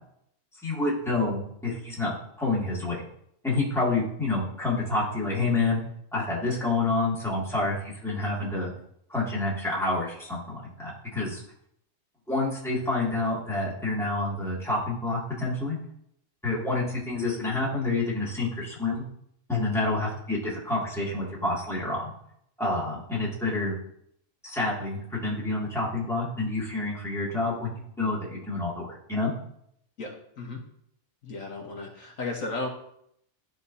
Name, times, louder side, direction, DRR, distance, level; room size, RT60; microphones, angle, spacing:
voice 1, 0.6-3.0 3.4-5.8 6.1-8.7 9.1-11.4 12.3-15.8 16.4-19.1 19.5-22.1 22.6-23.8 24.4-29.3, left 2 dB, ahead, -7 dB, 2.2 m, -28 dB
voice 2, 30.0-30.6 31.2-32.7, left 3 dB, 75° left, 0 dB, 1.6 m, -34 dB
12.0 x 4.2 x 2.7 m, 0.71 s
omnidirectional pair, 1.4 m